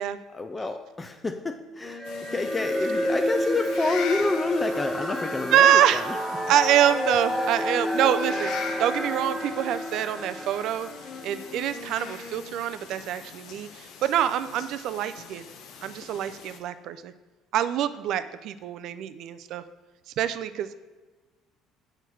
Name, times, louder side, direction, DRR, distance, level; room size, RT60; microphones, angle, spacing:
voice 1, 0.3-2.0 2.3-6.2, left 3 dB, 25° left, 7 dB, 0.5 m, -28 dB
Wind instrument woodwind instrument, 1.8-12.9, left 3 dB, 40° left, 1.2 m, -42 dB
sound 1, 2.0-16.6, left 6 dB, 65° left, 0.7 m, -42 dB
sound 2, 2.0-11.5, equal, ahead, 1.9 m, -30 dB
voice 2, 5.5-6.0 6.5-10.9 11.2-15.5 15.8-17.1 17.5-19.6 20.2-20.8, right 10 dB, 65° right, 12 dB, 0.4 m, -25 dB
8.0 x 4.4 x 4.6 m, 1.3 s
hypercardioid pair, 60°, 0 cm